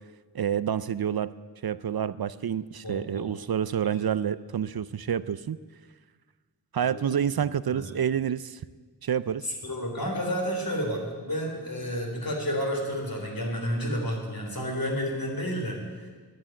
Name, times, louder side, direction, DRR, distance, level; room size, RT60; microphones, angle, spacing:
voice 1, 0.3-1.3 1.6-5.6 6.7-8.6 9.0-9.5, right 8 dB, 60° right, 16 dB, 0.5 m, -28 dB
voice 2, 2.8-3.3 3.8-4.0 6.8-7.2 7.7-7.8 9.4-16.1, equal, 55° left, 0 dB, 3.9 m, -31 dB
11.0 x 11.0 x 9.0 m, 1.4 s
wide cardioid pair, 55°, 41 cm